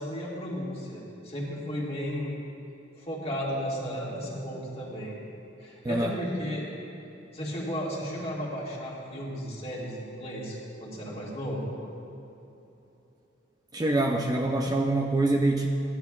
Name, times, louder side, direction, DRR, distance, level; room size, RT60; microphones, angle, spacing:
voice 1, 0.0-2.3 2.9-5.1 5.6-6.7 7.3-11.6, equal, 35° left, -5 dB, 1.9 m, -34 dB
voice 2, 5.8-6.2 13.7-15.7, right 2 dB, 20° right, 1 dB, 0.5 m, -25 dB
15.5 x 10.5 x 2.4 m, 3.0 s
head